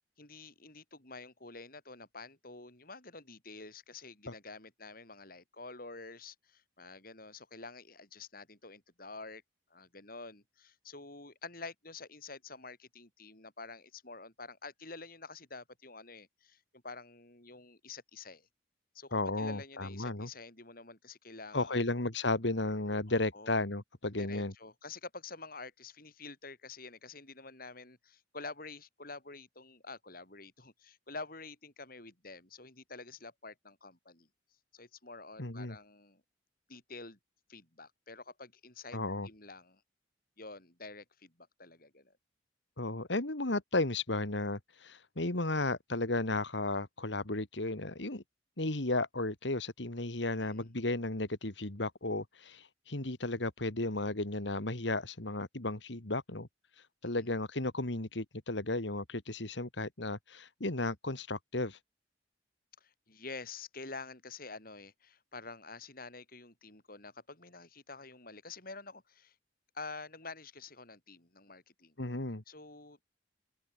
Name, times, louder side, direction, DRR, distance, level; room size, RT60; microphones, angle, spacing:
voice 1, 0.2-9.4 9.7-18.5 18.9-21.8 23.1-23.6 24.2-34.3 34.7-36.2 36.7-37.2 37.5-39.8 40.4-42.2 50.3-50.7 57.0-57.2 62.8-69.3 69.7-71.9 72.5-73.0, left 3 dB, 50° left, 7.5 m, -48 dB
voice 2, 19.1-20.3 21.5-24.5 35.4-35.8 38.9-39.3 42.8-48.2 48.6-56.5 56.7-61.8 72.0-72.4, left 2 dB, 75° left, 2.4 m, -34 dB
open air
head